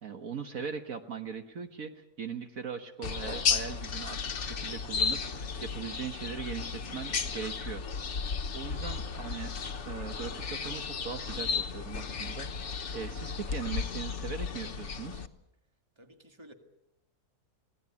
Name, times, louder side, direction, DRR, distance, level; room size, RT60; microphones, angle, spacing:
voice 1, 0.0-7.8 8.2-9.5 9.9-12.5 12.9-15.2, right 6 dB, 65° right, 7 dB, 1.7 m, -40 dB
sound 1, 3.0-15.3, left 6 dB, 50° left, 1.3 m, -34 dB
voice 2, 16.0-16.5, equal, 15° right, 5 dB, 2.2 m, -53 dB
26.0 x 18.0 x 8.5 m, 0.86 s
omnidirectional pair, 1.6 m